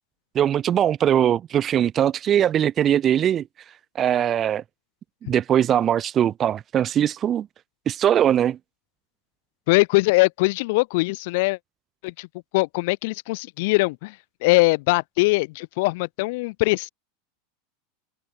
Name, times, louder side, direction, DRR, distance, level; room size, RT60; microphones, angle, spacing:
voice 1, 0.3-3.5 4.0-4.6 5.2-7.5 7.9-8.6, right 10 dB, 25° right, 7.1 m, -21 dB
voice 2, 9.7-11.6 12.0-12.3 12.5-14.2 14.4-16.9, left 24 dB, 55° left, 5.8 m, -21 dB
supercardioid pair, 160°, 0 cm